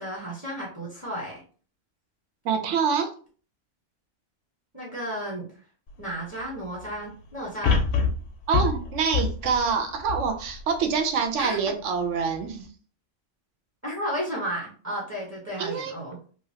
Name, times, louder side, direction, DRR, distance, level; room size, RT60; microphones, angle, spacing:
voice 1, 0.0-1.4 4.7-5.5 6.0-7.8 11.4-11.6 13.8-16.2, equal, 15° right, -5 dB, 0.7 m, -33 dB
voice 2, 2.4-3.1 8.5-12.7 15.6-15.9, right 6 dB, 75° right, 5 dB, 0.9 m, -26 dB
sound 1, 5.9-6.0 7.6-11.0 11.5-11.6, left 5 dB, 65° left, 0.8 m, -26 dB
3.1 x 2.4 x 2.7 m, 0.41 s
omnidirectional pair, 1.3 m